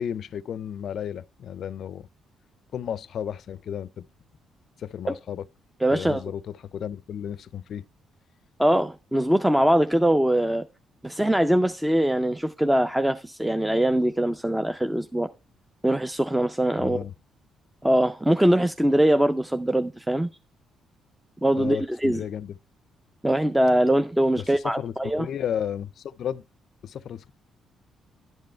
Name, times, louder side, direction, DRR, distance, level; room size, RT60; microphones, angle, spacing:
voice 1, 0.0-2.1 2.7-4.1 4.8-5.4 5.9-7.8 16.8-17.1 21.5-22.5 24.4-26.4 26.8-27.3, left 9 dB, 65° left, 0.4 m, -33 dB
voice 2, 5.8-6.2 8.6-10.7 11.0-15.3 15.8-17.0 17.8-20.3 21.4-22.2 23.2-25.3, right 1 dB, 5° right, 0.4 m, -22 dB
11.0 x 5.3 x 4.4 m
cardioid pair, 90°, 0 cm